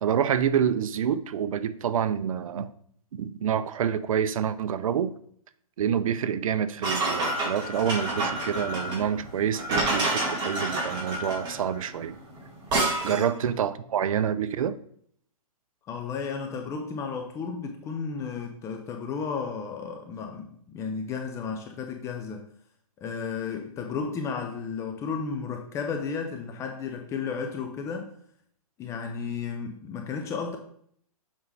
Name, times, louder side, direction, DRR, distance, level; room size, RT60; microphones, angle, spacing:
voice 1, 0.0-2.7 3.2-5.1 5.8-12.2 13.0-14.8, right 8 dB, 65° right, 14 dB, 0.6 m, -27 dB
sound 1, 6.8-13.3, right 2 dB, 20° right, 2.2 m, -28 dB
voice 2, 15.8-22.4 23.0-28.1 28.8-30.6, left 5 dB, 15° left, 4 dB, 0.6 m, -33 dB
7.3 x 5.2 x 3.3 m, 0.64 s
hypercardioid pair, 145°, 19 cm